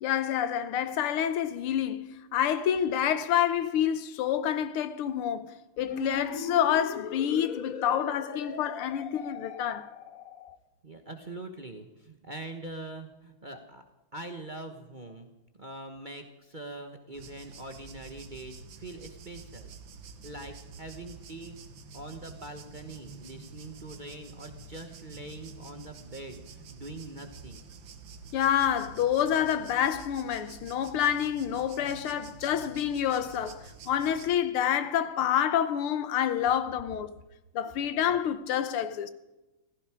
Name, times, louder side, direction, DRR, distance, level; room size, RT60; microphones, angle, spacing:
voice 1, 0.0-9.9 28.3-37.1 37.5-39.1, left 9 dB, 85° left, 1.8 m, -28 dB
sound 1, 5.8-10.6, left 6 dB, 55° left, 1.1 m, -39 dB
voice 2, 10.8-13.8 14.1-19.7 20.2-21.6 21.9-27.6, right 2 dB, 30° right, 0.9 m, -43 dB
sound 2, 17.1-34.3, right 5 dB, 65° right, 1.9 m, -48 dB
15.5 x 15.0 x 4.9 m
omnidirectional pair, 2.3 m